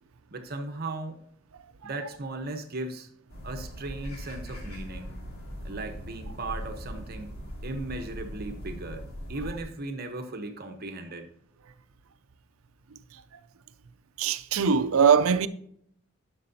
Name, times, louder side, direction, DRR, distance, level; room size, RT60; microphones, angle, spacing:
voice 1, 0.3-1.3 1.8-3.1 3.4-5.1 5.6-7.3 7.6-11.3, right 2 dB, 45° right, 1.0 m, -37 dB
sound 1, 3.3-9.6, equal, 85° left, 2.8 m, -40 dB
voice 2, 14.2-15.5, right 6 dB, 75° right, 0.5 m, -21 dB
11.5 x 6.1 x 2.8 m
head